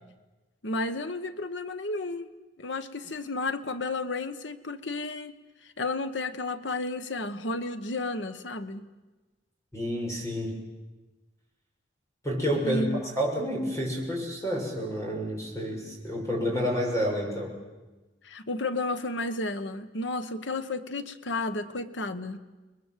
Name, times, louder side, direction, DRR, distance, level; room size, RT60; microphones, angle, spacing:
voice 1, 0.6-2.3 2.6-5.3 5.6-8.9 12.6-13.0 18.2-22.4, left 2 dB, 75° left, 10 dB, 1.3 m, -32 dB
voice 2, 9.7-10.5 12.2-17.5, equal, 15° left, -1 dB, 7.1 m, -29 dB
29.5 x 21.5 x 7.5 m, 1.2 s
head